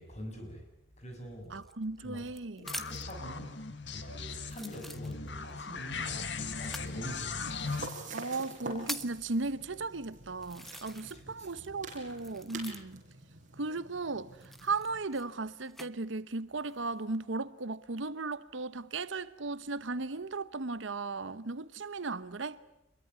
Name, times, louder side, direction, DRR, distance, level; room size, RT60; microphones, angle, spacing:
voice 1, 0.0-2.2 2.6-3.5 3.9-6.2 6.6-7.5 11.0-11.6, equal, 40° left, 7.1 m, -46 dB
sound 1, 1.5-3.2 3.9-4.0 4.5-5.5 6.6-6.9 7.8-7.9 8.4-9.2 9.9-10.0 10.4-11.3 11.6-13.1 14.3-15.9 16.6-17.0, equal, ahead, 1.1 m, -44 dB
voice 2, 1.5-2.7 8.1-13.0 13.6-22.6, right 3 dB, 75° right, 1.0 m, -36 dB
sound 2, 2.6-7.9, left 4 dB, 65° left, 2.0 m, -38 dB
sound 3, 6.7-15.0, right 3 dB, 45° right, 6.5 m, -47 dB
26.5 x 22.5 x 9.6 m
head